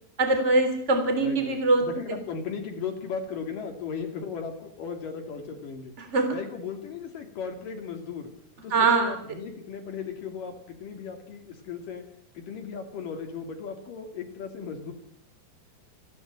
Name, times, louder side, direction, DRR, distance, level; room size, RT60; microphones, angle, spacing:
voice 1, 0.2-1.8 6.0-6.3 8.7-9.2, right 3 dB, 20° right, 6 dB, 3.5 m, -22 dB
voice 2, 1.2-5.9 6.3-8.3 8.6-12.0 12.3-14.9, left 6 dB, 65° left, 4 dB, 4.0 m, -36 dB
28.0 x 11.0 x 8.9 m, 0.66 s
omnidirectional pair, 4.1 m